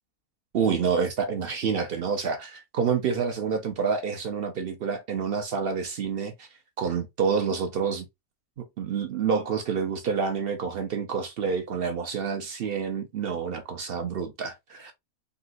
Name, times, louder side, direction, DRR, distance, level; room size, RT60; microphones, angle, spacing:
voice 1, 0.5-6.5 6.8-8.1 8.6-14.9, right 6 dB, 65° right, 0.6 m, -28 dB
3.8 x 2.6 x 2.4 m
omnidirectional pair, 1.5 m